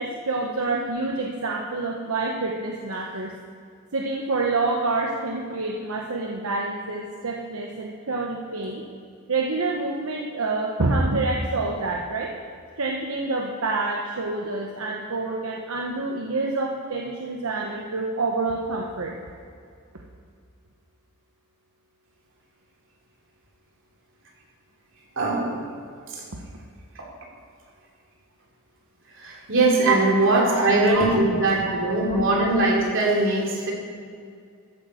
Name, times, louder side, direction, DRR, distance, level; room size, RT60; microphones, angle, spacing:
voice 1, 0.0-3.3 3.9-8.8 9.3-12.3 12.8-19.1 29.8-30.0 30.5-31.0 31.7-31.8 32.1-32.2, right 3 dB, 80° right, -1 dB, 1.1 m, -27 dB
voice 2, 25.2-25.6 26.1-26.2 29.1-33.7, right 2 dB, 60° right, -2 dB, 3.1 m, -21 dB
14.0 x 9.0 x 5.1 m, 2.2 s
head